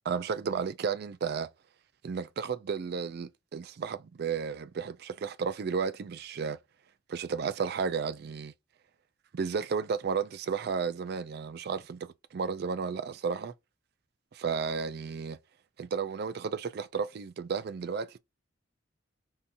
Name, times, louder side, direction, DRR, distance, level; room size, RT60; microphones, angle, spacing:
voice 1, 0.0-1.5 2.0-6.6 7.1-8.5 9.3-13.5 14.3-15.4 15.8-18.2, right 5 dB, 55° right, 0.4 m, -33 dB
3.7 x 2.8 x 2.5 m
head